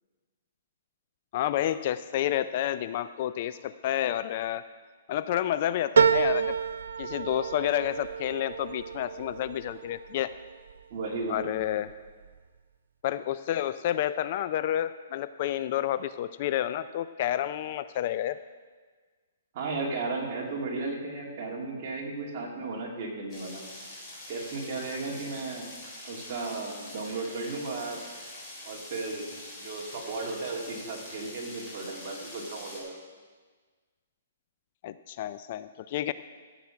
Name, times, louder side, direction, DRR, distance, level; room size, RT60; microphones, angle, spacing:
voice 1, 1.3-4.6 5.1-6.5 7.0-10.3 11.3-11.9 13.0-18.4 34.8-36.1, left 12 dB, 40° left, 14 dB, 0.3 m, -30 dB
sound 1, 6.0-10.7 11.2-11.9 12.3-12.4, right 6 dB, 80° right, 0.5 m, -28 dB
voice 2, 10.9-11.6 19.5-23.6 24.3-25.7 26.0-28.0 28.7-29.3 29.6-33.0, right 3 dB, 35° right, -2 dB, 2.4 m, -35 dB
sound 2, 23.3-32.8, left 1 dB, 15° left, 3.4 m, -44 dB
13.5 x 7.4 x 5.8 m, 1.5 s
hypercardioid pair, 160°, 0 cm